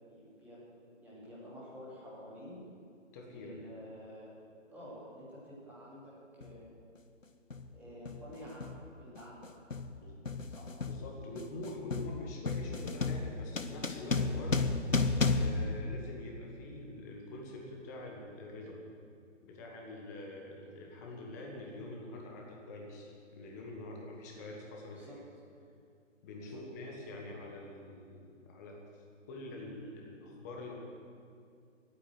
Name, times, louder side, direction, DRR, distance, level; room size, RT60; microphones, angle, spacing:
voice 1, 0.1-0.6 1.0-2.6 3.3-4.3 4.7-6.7 7.7-8.7 9.0-9.5 10.5-10.7 24.9-25.2 26.4-26.6, equal, 5° right, -9 dB, 2.7 m, -50 dB
voice 2, 3.1-3.6 9.9-10.2 10.9-14.7 15.3-18.8 19.4-25.2 26.2-30.7, left 2 dB, 15° left, -1 dB, 1.4 m, -45 dB
sound 1, 6.4-6.6 7.5-7.8 8.1-16.6, left 3 dB, 90° left, 0.9 m, -34 dB
15.5 x 9.0 x 8.0 m, 2.4 s
figure-of-eight pair, 145°, 38 cm